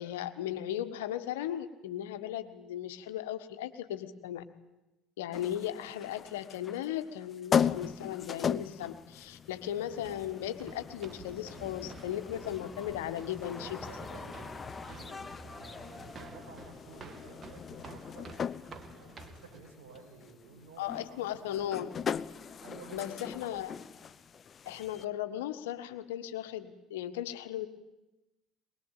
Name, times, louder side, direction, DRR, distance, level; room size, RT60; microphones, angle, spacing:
voice 1, 0.0-4.4 5.2-13.8 20.8-21.9 22.9-23.7 24.6-27.7, left 11 dB, 80° left, 9 dB, 1.5 m, -37 dB
sound 1, 5.3-25.0, left 7 dB, 40° left, 0.9 m, -39 dB
sound 2, 9.8-19.6, right 4 dB, 40° right, 2.3 m, -51 dB
sound 3, 11.5-16.3, left 3 dB, 20° left, 1.8 m, -46 dB
voice 2, 13.3-18.3 18.9-21.8 22.6-23.8, right 4 dB, 75° right, 2 dB, 6.8 m, -53 dB
22.5 x 21.0 x 9.1 m, 0.99 s
hypercardioid pair, 65°, 0 cm